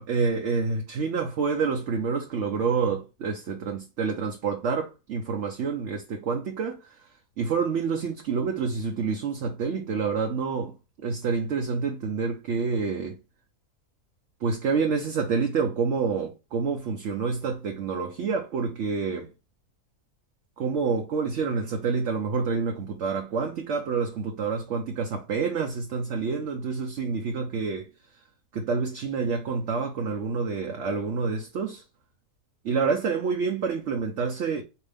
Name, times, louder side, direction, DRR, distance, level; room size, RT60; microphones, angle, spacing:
voice 1, 0.0-7.1 7.4-10.8 11.0-13.2 14.4-19.3 20.6-27.9 28.5-31.8 32.6-34.6, right 5 dB, 65° right, 1.0 m, -28 dB
4.6 x 2.9 x 3.3 m
omnidirectional pair, 1.4 m